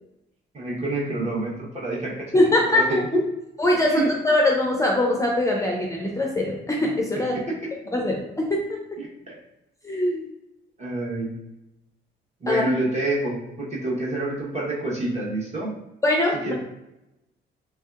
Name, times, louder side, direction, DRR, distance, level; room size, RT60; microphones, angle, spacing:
voice 1, 0.5-2.3 2.7-3.2 3.9-4.1 7.3-7.7 9.0-9.3 10.8-11.3 12.4-15.7 16.4-16.5, right 2 dB, 35° right, -4 dB, 1.1 m, -27 dB
voice 2, 2.3-2.9 3.6-7.3 7.9-8.8 9.8-10.2 12.5-12.6 16.0-16.5, left 1 dB, 15° left, -1 dB, 0.4 m, -22 dB
3.3 x 2.6 x 2.4 m, 0.90 s
cardioid pair, 90°, 20 cm